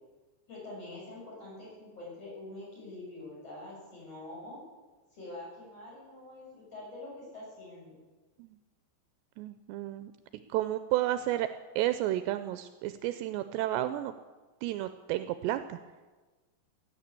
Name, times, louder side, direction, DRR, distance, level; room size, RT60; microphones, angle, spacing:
voice 1, 0.5-4.6 5.1-7.9, left 2 dB, 30° left, -5 dB, 7.8 m, -45 dB
voice 2, 9.4-10.1 10.5-11.5 11.8-14.1 14.6-15.8, right 14 dB, 80° right, 10 dB, 2.6 m, -31 dB
16.5 x 10.0 x 8.3 m, 1.3 s
omnidirectional pair, 5.2 m